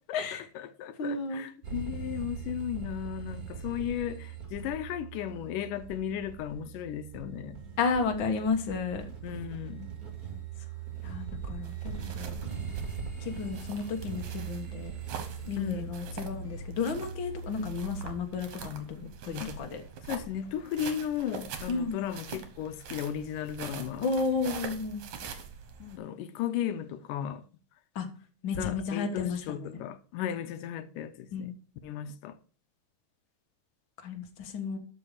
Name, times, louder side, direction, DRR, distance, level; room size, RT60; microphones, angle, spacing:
voice 1, 0.0-7.6 9.2-9.9 15.6-16.0 19.4-19.5 20.1-24.1 25.8-27.4 28.6-31.5 31.8-32.4, left 10 dB, 85° left, 2.2 m, -35 dB
voice 2, 1.0-1.5 7.8-9.1 11.0-12.4 13.2-14.9 15.4-19.8 21.7-22.0 24.0-25.0 27.9-28.1 28.4-29.8 31.3-31.5 34.0-34.8, left 4 dB, 50° left, 1.6 m, -32 dB
sound 1, 1.6-18.1, right 6 dB, 30° right, 2.5 m, -40 dB
sound 2, 11.6-26.0, right 6 dB, 65° right, 2.5 m, -44 dB
12.5 x 5.4 x 4.9 m
omnidirectional pair, 3.8 m